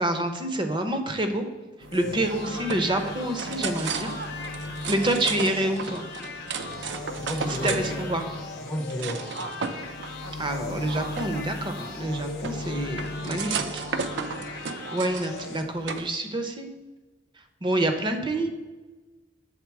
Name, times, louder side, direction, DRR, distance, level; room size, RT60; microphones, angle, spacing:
voice 1, 0.0-1.4 1.9-4.1 4.9-6.0 7.5-8.2 10.4-13.8 14.9-16.7 17.6-18.5, right 1 dB, 25° right, 6 dB, 0.6 m, -27 dB
sound 1, 1.8-14.8 15.1-16.1, left 2 dB, 80° left, 0.4 m, -40 dB
sound 2, 1.8-16.1, right 5 dB, 70° right, 0.5 m, -35 dB
sound 3, 1.9-15.6, left 4 dB, 55° left, 0.9 m, -40 dB
voice 2, 7.2-9.6 11.0-11.1 18.4-18.5, equal, 20° left, 0 dB, 0.6 m, -35 dB
7.2 x 3.8 x 4.7 m, 1.3 s
head